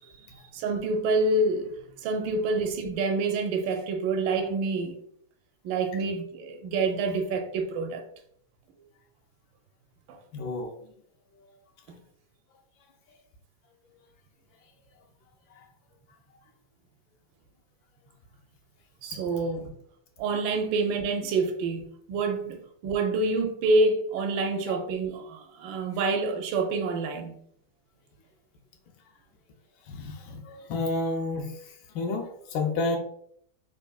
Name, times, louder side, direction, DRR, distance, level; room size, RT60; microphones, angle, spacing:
voice 1, 0.0-1.7 2.0-5.0 5.6-8.0 10.1-10.2 11.9-12.0 19.0-19.7 20.2-27.3, right 3 dB, 80° right, 1.3 m, -27 dB
voice 2, 10.3-10.7 15.5-15.7 24.6-24.7 29.9-33.0, left 3 dB, 80° left, 1.5 m, -31 dB
3.6 x 3.5 x 2.3 m
omnidirectional pair, 2.2 m